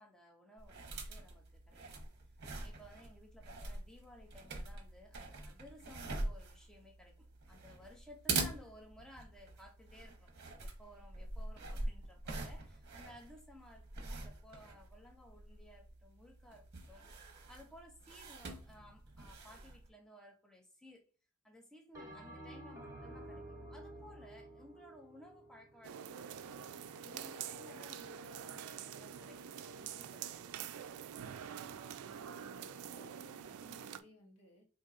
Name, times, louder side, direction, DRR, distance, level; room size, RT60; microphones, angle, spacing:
voice 1, 0.0-2.0 2.6-10.3 10.6-17.1 17.5-21.0 21.4-30.8, left 1 dB, 5° left, 1 dB, 0.6 m, -58 dB
sound 1, 0.6-19.9, right 3 dB, 50° right, 0.8 m, -44 dB
Bell, 21.9-26.5, right 1 dB, 15° right, 1.0 m, -51 dB
sound 2, 25.8-34.0, right 8 dB, 70° right, 0.3 m, -46 dB
voice 2, 31.2-34.6, equal, 85° left, 0 dB, 1.2 m, -61 dB
4.3 x 2.7 x 2.5 m, 0.38 s
head